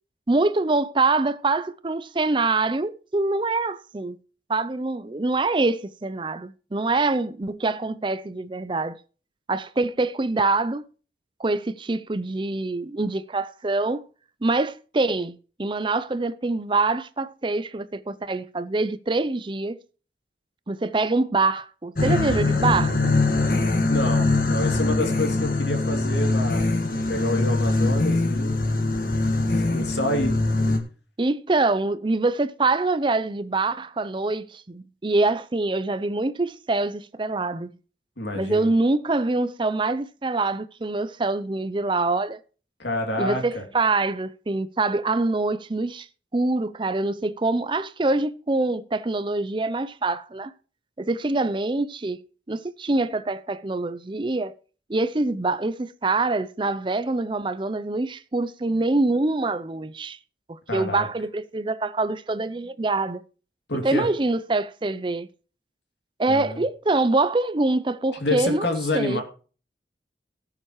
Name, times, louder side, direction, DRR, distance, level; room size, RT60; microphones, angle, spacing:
voice 1, 0.3-4.2 4.5-9.0 9.5-10.9 11.4-14.1 14.4-19.8 20.7-23.1 31.2-37.7 38.3-42.4 43.2-46.1 46.3-50.5 51.0-52.2 52.5-54.5 54.9-60.2 60.5-63.2 63.8-65.3 66.2-68.7 68.9-69.2, right 3 dB, 30° right, 0.5 m, -25 dB
sound 1, 22.0-30.8, left 2 dB, 55° left, 1.7 m, -22 dB
voice 2, 23.9-28.6 29.5-30.4 38.2-38.7 42.8-43.6 60.7-61.1 63.7-64.1 66.3-66.6 68.2-69.2, left 1 dB, 85° left, 2.7 m, -28 dB
17.5 x 7.4 x 3.1 m
head